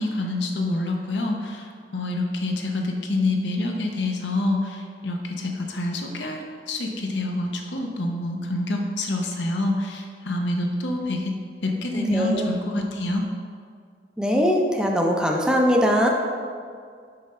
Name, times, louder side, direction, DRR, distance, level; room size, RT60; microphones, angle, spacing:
voice 1, 0.0-11.3 11.6-13.2, left 2 dB, 75° left, 2 dB, 0.8 m, -27 dB
voice 2, 11.9-12.5 14.2-16.1, equal, 5° right, 0 dB, 0.6 m, -21 dB
5.7 x 5.3 x 4.3 m, 2.1 s
head